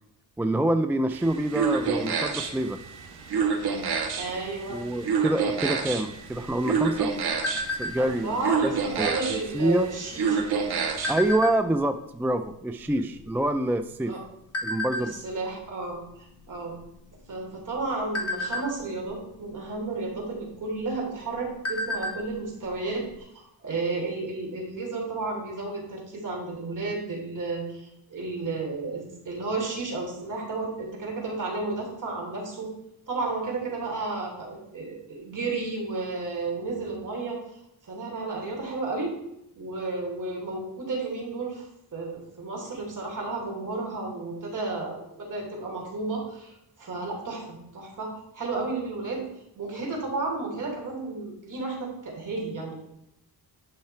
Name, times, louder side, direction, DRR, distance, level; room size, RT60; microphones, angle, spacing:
voice 1, 0.4-2.8 4.7-7.1 7.8-9.9 11.1-14.2 14.6-15.2, right 1 dB, 5° right, 8 dB, 0.3 m, -26 dB
sound 1, 1.1-11.3, right 5 dB, 80° right, 1.4 m, -29 dB
voice 2, 4.2-4.8 8.0-10.4 13.0-13.1 14.1-14.2 15.0-16.8 17.3-32.7 33.1-37.4 37.8-39.2 39.5-41.7 41.9-48.1 48.3-49.2 49.5-52.8, right 3 dB, 50° right, -1 dB, 3.3 m, -32 dB
sound 2, 6.3-8.3 8.7-9.0 9.3-9.6 10.3-11.9 12.5-12.6 12.8-14.1 14.5-15.0 15.6-15.8 16.1-16.3 16.8-17.3 17.7-19.2 20.2-20.3 20.8-20.9 21.2-22.3 22.6-22.7 23.1-23.2, left 1 dB, 40° left, 1.9 m, -31 dB
10.5 x 5.7 x 4.4 m, 0.83 s
wide cardioid pair, 125°, 38 cm